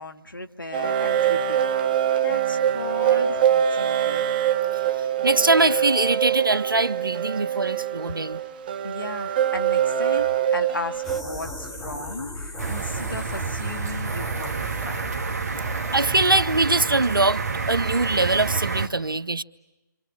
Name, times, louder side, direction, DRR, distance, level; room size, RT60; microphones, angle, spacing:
voice 1, 0.0-1.6 2.2-4.3 8.8-15.0, left 2 dB, 80° left, 1.8 m, -36 dB
sound 1, 0.7-11.2, right 9 dB, 25° right, 1.0 m, -24 dB
voice 2, 5.2-8.4 15.9-19.4, right 2 dB, 80° right, 1.0 m, -22 dB
sound 2, 10.9-17.0, left 1 dB, 5° left, 1.8 m, -37 dB
sound 3, 12.6-18.9, right 5 dB, 45° right, 1.8 m, -29 dB
29.5 x 26.5 x 7.4 m
figure-of-eight pair, 150°, 11 cm